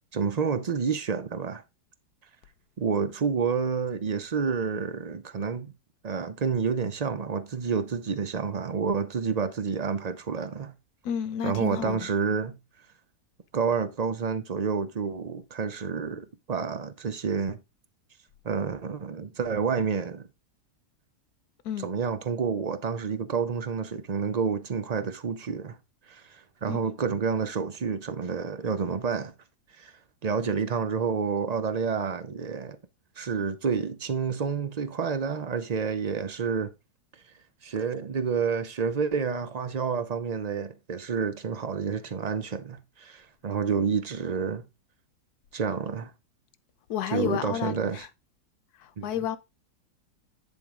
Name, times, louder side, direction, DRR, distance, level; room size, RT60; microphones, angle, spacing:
voice 1, 0.1-1.6 2.8-5.7 6.0-10.7 11.4-12.6 13.5-17.6 18.4-20.3 21.8-25.8 26.1-29.3 29.8-32.8 33.2-36.7 37.6-44.7 45.5-46.1 47.1-48.1 49.0-49.1, right 6 dB, 85° right, 0.3 m, -29 dB
voice 2, 11.0-12.0 21.6-21.9 26.7-26.8 46.9-48.1 48.8-49.4, left 9 dB, 70° left, 1.3 m, -31 dB
10.5 x 3.7 x 5.0 m
omnidirectional pair, 1.8 m